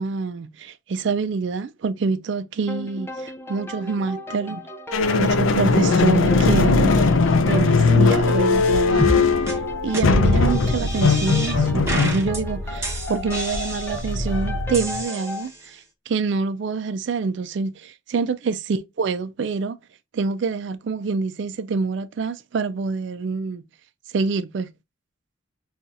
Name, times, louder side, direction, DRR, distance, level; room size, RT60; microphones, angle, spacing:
voice 1, 0.0-4.6 5.2-7.1 7.4-9.3 9.8-19.8 20.1-23.6 24.1-24.7, right 4 dB, 65° right, 0.4 m, -26 dB
sound 1, 2.7-15.5, left 1 dB, 10° left, 0.4 m, -34 dB
sound 2, 4.9-15.0, left 4 dB, 85° left, 0.5 m, -20 dB
sound 3, 9.0-9.2 9.5-9.6 9.9-10.0 10.5-11.6 11.9-12.4 12.8-14.2 14.7-15.7, right 1 dB, 15° right, 1.0 m, -29 dB
5.4 x 2.4 x 2.5 m
head